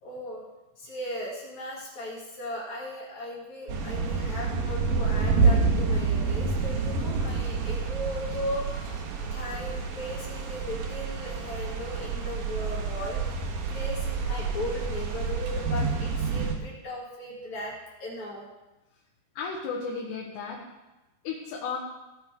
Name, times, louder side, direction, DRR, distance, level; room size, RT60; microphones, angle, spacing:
voice 1, 0.0-0.4 0.8-13.3 13.7-18.5, left 1 dB, 50° left, -4 dB, 3.2 m, -37 dB
sound 1, 3.7-16.5, right 4 dB, 70° right, 2.9 m, -28 dB
voice 2, 19.4-20.6 21.3-21.8, left 5 dB, 85° left, -3 dB, 3.5 m, -34 dB
17.0 x 5.9 x 4.8 m, 1.1 s
omnidirectional pair, 4.8 m